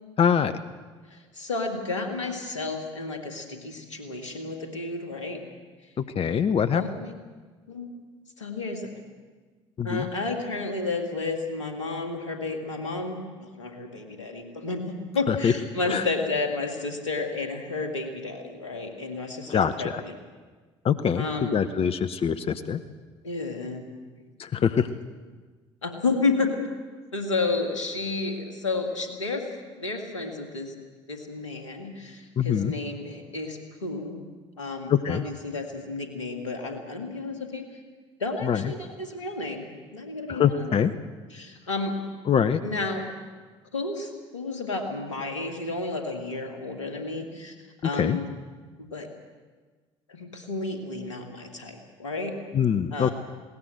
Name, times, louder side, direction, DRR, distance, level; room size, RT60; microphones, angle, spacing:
voice 1, 0.2-0.5 6.0-6.8 9.8-10.1 15.3-15.5 15.9-16.0 19.5-20.0 20.8-22.8 24.4-24.9 32.4-32.7 34.9-35.2 38.4-38.7 40.3-40.9 42.3-42.6 48.0-48.2 52.5-53.1, left 7 dB, 40° left, 11 dB, 0.9 m, -24 dB
voice 2, 1.1-5.4 6.7-7.1 7.7-7.9 8.4-8.9 9.8-20.2 21.1-21.6 23.2-23.8 25.8-26.5 27.1-29.5 29.8-30.7 31.1-34.3 34.6-37.7 38.2-40.8 41.3-42.0 42.6-43.1 43.7-47.5 47.8-48.3 48.8-49.1 50.1-52.4 52.9-53.1, left 3 dB, 85° left, 4 dB, 2.3 m, -31 dB
20.5 x 18.0 x 7.9 m, 1.4 s
figure-of-eight pair, 55°, 15 cm